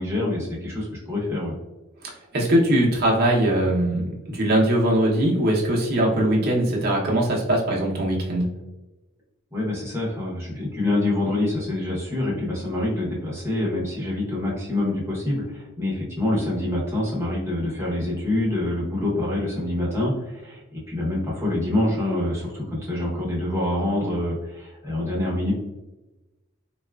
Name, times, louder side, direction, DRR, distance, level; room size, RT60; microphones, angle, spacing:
voice 1, 0.0-1.5 9.5-25.5, left 1 dB, 10° right, -5 dB, 0.8 m, -26 dB
voice 2, 2.0-8.5, right 1 dB, 45° right, -3 dB, 0.7 m, -21 dB
4.0 x 2.3 x 2.3 m, 1.1 s
head